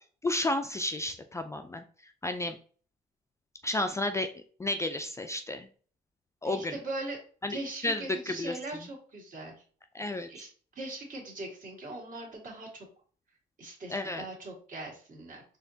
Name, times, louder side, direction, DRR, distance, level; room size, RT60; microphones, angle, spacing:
voice 1, 0.2-1.8 2.2-2.6 3.6-4.3 4.6-5.7 6.4-6.8 7.4-8.9 9.9-10.3 13.9-14.2, left 2 dB, 15° left, 7 dB, 0.3 m, -32 dB
voice 2, 6.4-7.2 7.5-9.5 10.3-10.5 10.8-12.9 13.6-15.4, right 2 dB, 50° right, -1 dB, 1.8 m, -40 dB
4.1 x 2.9 x 2.7 m, 0.43 s
cardioid pair, 90°, 17 cm